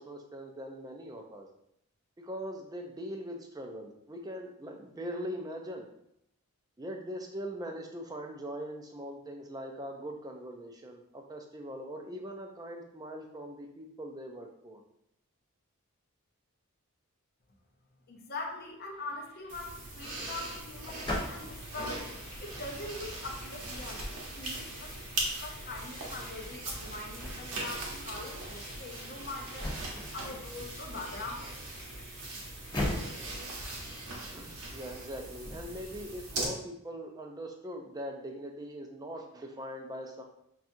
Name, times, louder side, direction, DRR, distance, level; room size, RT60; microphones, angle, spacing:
voice 1, 0.0-1.5 2.2-5.9 6.8-14.8 34.3-40.2, equal, 15° right, 3 dB, 0.4 m, -41 dB
voice 2, 18.1-22.1 22.4-24.9 25.4-29.7 30.1-31.5, left 2 dB, 45° left, 1 dB, 0.6 m, -42 dB
sound 1, 18.9-35.6, left 1 dB, 75° left, 1.0 m, -52 dB
sound 2, 19.5-36.5, right 2 dB, 85° right, 0.9 m, -40 dB
sound 3, 19.9-36.1, left 1 dB, 20° left, 0.8 m, -43 dB
5.7 x 2.4 x 2.6 m, 0.77 s
head